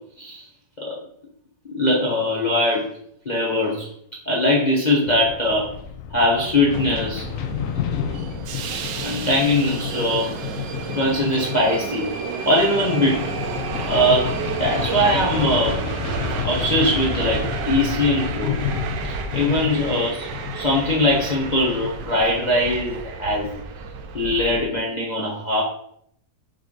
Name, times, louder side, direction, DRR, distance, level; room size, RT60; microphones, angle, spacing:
voice 1, 1.7-2.9 3.2-3.9 4.3-5.7 6.1-7.2 9.0-10.3 10.9-12.1 12.4-13.3 13.9-15.8 16.4-18.5 19.1-20.3 20.5-23.5 24.1-25.6, left 1 dB, 30° left, -4 dB, 1.0 m, -21 dB
sound 1, 5.0-22.6, left 7 dB, 70° left, 0.8 m, -31 dB
Subway metro underground, 6.7-24.6, right 5 dB, 90° right, 1.4 m, -31 dB
6.0 x 3.4 x 5.2 m, 0.69 s
omnidirectional pair, 1.9 m